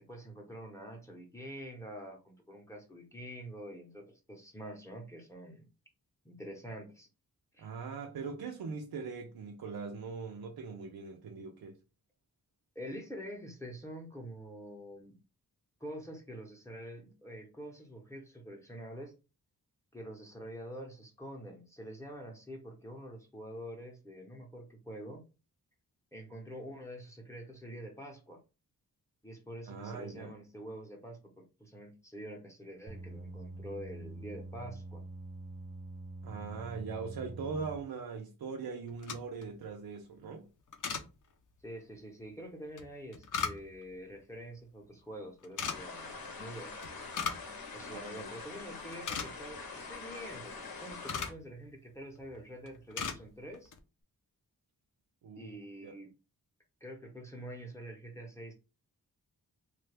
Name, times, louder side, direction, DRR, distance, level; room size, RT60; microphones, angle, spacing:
voice 1, 0.0-5.7 6.2-7.1 7.5-7.7 12.7-15.2 15.8-19.1 19.9-25.2 26.1-28.4 29.2-35.0 41.6-46.8 47.7-53.7 55.4-56.1 56.8-58.5, equal, 10° left, 0.8 m, -46 dB
voice 2, 7.6-11.7 29.7-30.4 36.2-40.5 47.9-48.3 55.2-55.5 55.8-55.9, right 5 dB, 85° right, 0.6 m, -41 dB
sound 1, 32.9-37.8, right 2 dB, 20° right, 0.4 m, -45 dB
sound 2, 38.9-39.5 40.7-41.1 42.8-43.9 45.4-45.8 46.8-47.5 47.8-47.9 48.4-48.6 48.8-49.6 50.5-51.4 52.2-52.4 52.7-53.2 53.5-53.8, left 6 dB, 60° left, 0.6 m, -37 dB
sound 3, 45.6-51.3, left 4 dB, 80° left, 0.9 m, -45 dB
3.1 x 2.3 x 3.3 m
wide cardioid pair, 140°, 36 cm